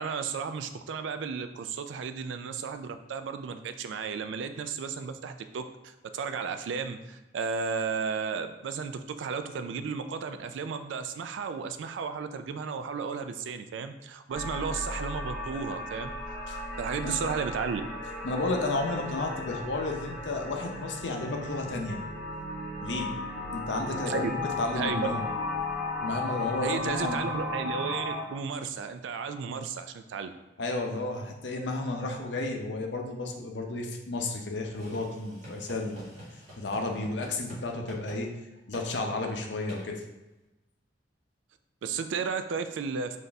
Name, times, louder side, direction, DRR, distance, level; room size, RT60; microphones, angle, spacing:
voice 1, 0.0-16.1 16.8-17.8 24.1-24.3 24.8-25.1 26.6-30.3 41.8-43.2, right 5 dB, 90° right, 9 dB, 0.3 m, -34 dB
sound 1, 14.3-28.2, left 2 dB, 5° left, 0.7 m, -35 dB
voice 2, 18.2-22.0 22.8-23.1 23.5-25.3 26.0-27.3 30.6-36.1 36.6-38.3 38.7-40.0, left 2 dB, 75° left, 2 dB, 0.6 m, -32 dB
sound 2, 34.7-37.6 37.9-38.2 38.7-38.9 39.7-39.9, equal, 40° right, 1.2 m, -46 dB
4.0 x 2.6 x 3.4 m, 1.0 s
head